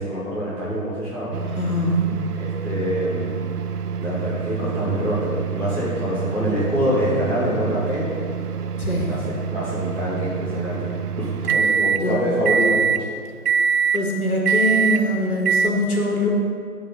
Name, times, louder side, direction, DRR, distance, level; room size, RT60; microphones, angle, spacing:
voice 1, 0.0-1.6 2.3-3.3 4.0-8.1 9.1-9.2 9.5-10.9 11.2-13.1, equal, 10° right, -11 dB, 2.4 m, -25 dB
sound 1, 1.3-12.0 12.5-13.0 13.5-14.0 14.5-15.0 15.5-15.7, right 6 dB, 85° right, 0.6 m, -25 dB
voice 2, 1.6-2.1 8.8-9.2 12.0-12.3 13.9-16.3, left 1 dB, 70° left, -1 dB, 2.4 m, -23 dB
12.0 x 5.3 x 5.6 m, 2.1 s
figure-of-eight pair, 145°, 45 cm